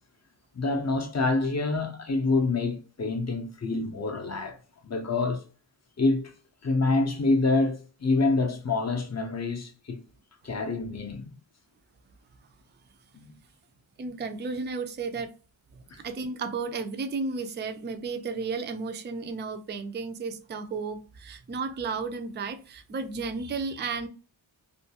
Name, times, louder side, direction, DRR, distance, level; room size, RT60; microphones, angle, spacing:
voice 1, 0.5-4.6 4.8-5.4 6.0-6.3 6.6-10.0 10.4-11.3 13.1-13.3 15.9-16.0, left 3 dB, 35° left, 0.5 m, -27 dB
voice 2, 14.0-15.3 15.7-24.1, right 4 dB, 25° right, 0.3 m, -33 dB
2.4 x 2.2 x 2.7 m
wide cardioid pair, 90°, 49 cm